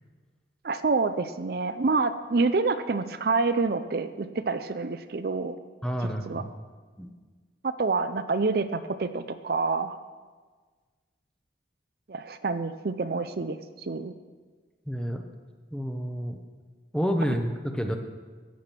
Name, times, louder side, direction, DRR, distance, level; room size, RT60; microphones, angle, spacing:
voice 1, 0.6-5.6 6.0-6.4 7.8-10.0 12.1-14.1, right 3 dB, 55° right, 11 dB, 0.5 m, -27 dB
voice 2, 5.8-6.5 7.0-7.1 14.9-15.2 15.7-16.4 16.9-18.0, equal, 5° left, 5 dB, 0.9 m, -29 dB
14.5 x 8.6 x 6.0 m, 1.5 s
head